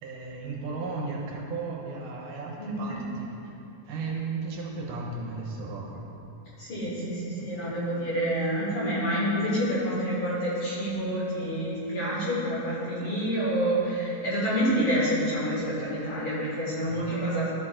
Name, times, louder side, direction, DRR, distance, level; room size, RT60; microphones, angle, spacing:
voice 1, 0.0-3.0 3.4-3.5 3.9-6.1 7.5-7.7 16.9-17.1, right 3 dB, 75° right, -1 dB, 2.2 m, -35 dB
voice 2, 2.6-3.0 6.6-17.5, equal, 50° left, -8 dB, 2.5 m, -28 dB
13.0 x 4.6 x 3.7 m, 2.9 s
omnidirectional pair, 3.8 m